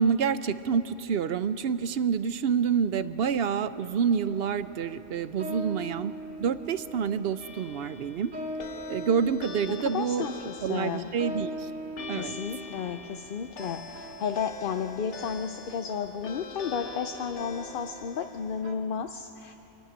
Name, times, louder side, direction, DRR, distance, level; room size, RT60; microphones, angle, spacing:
voice 1, 0.0-8.3 8.9-10.3 10.6-11.7 12.1-12.4, right 7 dB, 60° right, 13 dB, 0.8 m, -28 dB
sound 1, 4.1-18.7, equal, 90° right, 2.1 m, -42 dB
sound 2, 7.4-18.6, left 5 dB, 75° left, 1.4 m, -44 dB
voice 2, 9.7-11.1 12.1-19.5, left 7 dB, 55° left, 7 dB, 0.7 m, -33 dB
24.5 x 11.0 x 9.9 m, 3.0 s
omnidirectional pair, 1.2 m